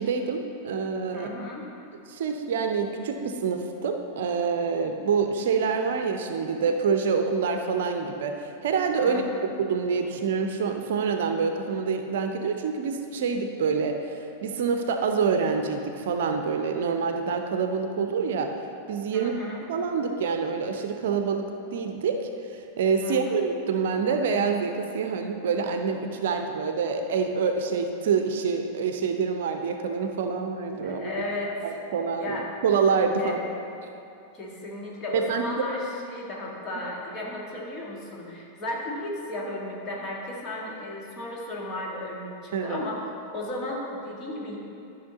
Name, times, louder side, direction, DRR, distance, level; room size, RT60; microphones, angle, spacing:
voice 1, 0.0-1.3 2.1-18.5 18.9-19.3 19.7-31.1 31.6-32.4 32.6-33.4 35.1-35.7 42.5-42.8, right 5 dB, 55° right, 5 dB, 0.6 m, -26 dB
voice 2, 1.1-1.7 9.0-9.4 19.1-19.6 23.0-23.4 30.8-31.5 32.2-32.5 33.2-33.4 34.3-44.6, left 1 dB, 30° left, -3 dB, 1.9 m, -34 dB
12.5 x 5.6 x 4.0 m, 2.7 s
figure-of-eight pair, 90°, 0 cm